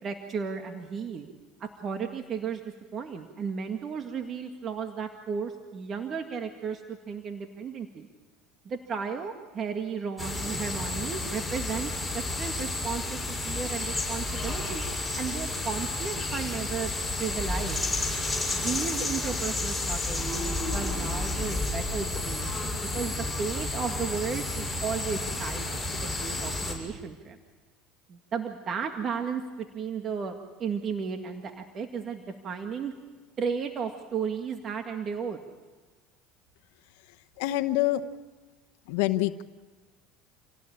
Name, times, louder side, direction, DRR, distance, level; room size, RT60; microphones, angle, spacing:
voice 1, 0.0-1.3 1.6-2.6 2.9-8.1 8.7-13.2 13.4-14.9 15.1-17.8 18.5-27.4 28.1-32.9 33.4-35.4, right 6 dB, 40° right, 5 dB, 2.0 m, -34 dB
sound 1, 10.2-26.7, left 2 dB, ahead, 6.8 m, -31 dB
voice 2, 37.4-38.0 38.9-39.4, left 16 dB, 80° left, 11 dB, 1.0 m, -26 dB
28.0 x 17.5 x 8.7 m, 1.3 s
supercardioid pair, 110°, 0 cm